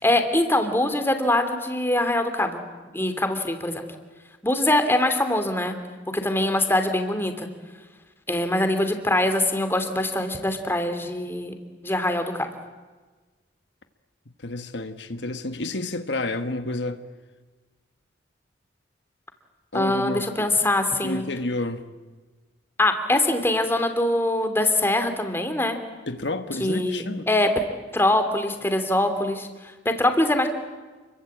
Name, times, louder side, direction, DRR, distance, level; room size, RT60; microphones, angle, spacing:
voice 1, 0.0-2.6 2.9-3.8 4.4-5.8 6.1-7.5 8.3-11.5 11.8-12.5 19.7-21.3 22.8-25.8 26.6-27.5 27.9-30.5, left 1 dB, 15° left, 7 dB, 2.8 m, -23 dB
voice 2, 14.4-17.0 19.7-20.5 21.0-21.9 26.1-27.3, left 2 dB, 70° left, 8 dB, 1.5 m, -30 dB
29.5 x 23.0 x 8.7 m, 1.3 s
head